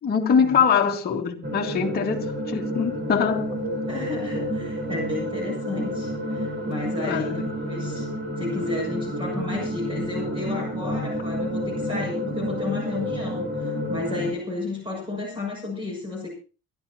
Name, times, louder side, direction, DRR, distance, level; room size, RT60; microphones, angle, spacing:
voice 1, 0.0-3.5 7.0-7.4, left 6 dB, 30° left, 2.1 m, -23 dB
sound 1, 1.4-14.3, equal, 35° right, 4.6 m, -30 dB
voice 2, 3.9-8.1 8.4-16.3, left 2 dB, 15° right, 6.8 m, -32 dB
28.0 x 11.5 x 2.9 m
cardioid pair, 155°, 32 cm